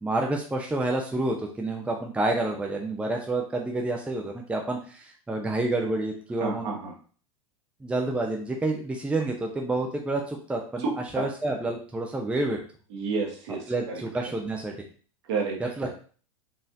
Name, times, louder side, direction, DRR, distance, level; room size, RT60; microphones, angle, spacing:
voice 1, 0.0-6.7 7.8-10.8 11.1-12.6 13.7-14.8 15.6-15.9, right 2 dB, 5° right, 1 dB, 0.6 m, -29 dB
voice 2, 6.4-6.9 10.8-11.3 12.9-14.3 15.3-15.9, right 4 dB, 55° right, 1 dB, 1.2 m, -31 dB
4.3 x 3.2 x 2.6 m, 0.41 s
figure-of-eight pair, 90°, 17 cm